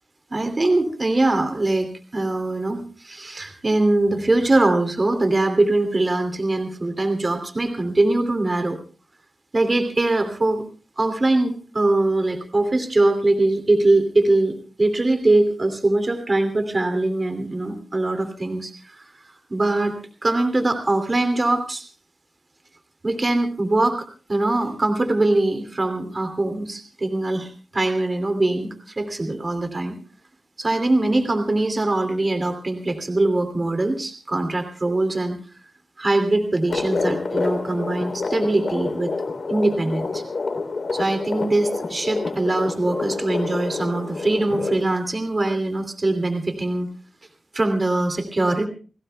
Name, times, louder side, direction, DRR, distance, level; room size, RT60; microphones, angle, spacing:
voice 1, 0.3-8.8 9.5-10.6 11.0-19.1 19.5-21.8 23.0-30.0 30.6-35.4 36.0-39.1 39.5-40.2 40.9-46.9 47.5-48.7, right 2 dB, 35° right, 7 dB, 2.7 m, -22 dB
sound 1, 36.7-44.8, left 3 dB, 65° left, 3.3 m, -28 dB
29.5 x 17.0 x 2.3 m, 0.37 s
cardioid pair, 65°, 0 cm